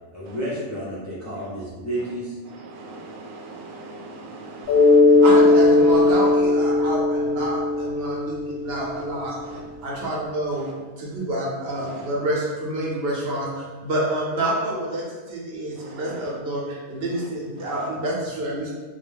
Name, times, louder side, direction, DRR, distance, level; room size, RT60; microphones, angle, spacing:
voice 1, 0.1-2.3 4.7-4.8 9.3-9.4, right 1 dB, 20° left, -9 dB, 0.4 m, -31 dB
voice 2, 2.5-5.2 9.5-9.6 15.8-16.0, right 2 dB, 85° right, -1 dB, 1.0 m, -40 dB
Mallet percussion, 4.7-9.1, left 2 dB, 65° left, 0.7 m, -18 dB
voice 3, 5.2-9.3 9.8-18.7, right 1 dB, 60° right, -4 dB, 0.7 m, -28 dB
2.3 x 2.1 x 3.3 m, 1.4 s
omnidirectional pair, 1.3 m